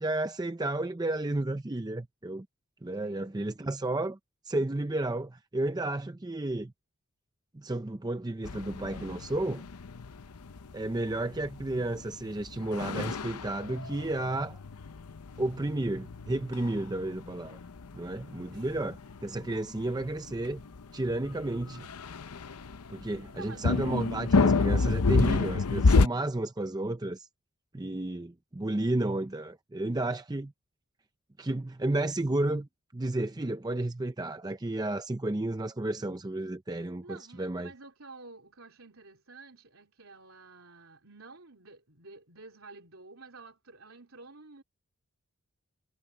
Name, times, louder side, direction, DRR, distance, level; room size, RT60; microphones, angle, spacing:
voice 1, 0.0-2.5 2.8-4.2 4.4-6.7 7.5-9.6 10.7-14.6 15.4-17.6 17.9-19.0 19.2-20.6 20.9-21.9 22.9-27.3 27.7-30.5 31.4-32.7 32.9-37.7, right 2 dB, 15° right, 0.5 m, -32 dB
voice 2, 3.0-3.4 18.5-18.8 23.3-23.9 37.0-44.6, right 3 dB, 65° right, 3.9 m, -50 dB
sound 1, 8.4-26.1, left 3 dB, 90° left, 0.7 m, -30 dB
head